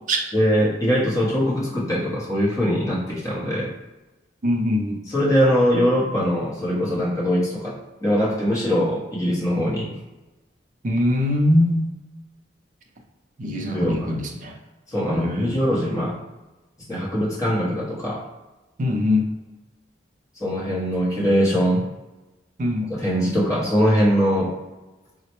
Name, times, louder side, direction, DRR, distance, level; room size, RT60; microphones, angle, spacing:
voice 1, 0.3-3.7 5.1-7.7 8.0-9.9 13.7-14.1 14.9-16.2 16.9-18.2 20.4-21.9 22.9-24.5, equal, 15° left, -7 dB, 0.8 m, -22 dB
voice 2, 4.4-5.0 10.8-11.9 13.4-14.6 15.1-15.5 18.8-19.3 22.6-22.9, left 1 dB, 40° right, 2 dB, 0.4 m, -22 dB
4.0 x 2.1 x 2.9 m, 1.1 s
head